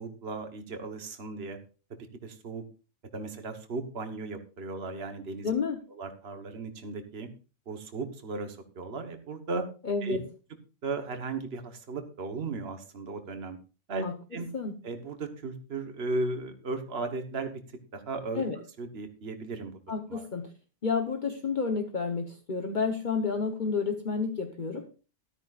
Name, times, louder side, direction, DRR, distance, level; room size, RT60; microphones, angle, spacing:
voice 1, 0.0-1.6 1.9-2.6 3.1-5.5 5.9-7.3 7.7-9.6 10.0-10.2 10.8-13.6 13.9-14.0 14.3-14.5 14.8-17.6 17.9-18.4 18.8-19.8 20.1-20.3, right 3 dB, 60° right, 6 dB, 1.6 m, -36 dB
voice 2, 5.4-5.8 9.8-10.2 14.0-14.1 14.5-14.7 18.4-18.6 19.9-20.5 20.8-24.8, left 5 dB, 40° left, 4 dB, 1.2 m, -30 dB
14.0 x 12.5 x 2.5 m, 0.33 s
omnidirectional pair, 1.2 m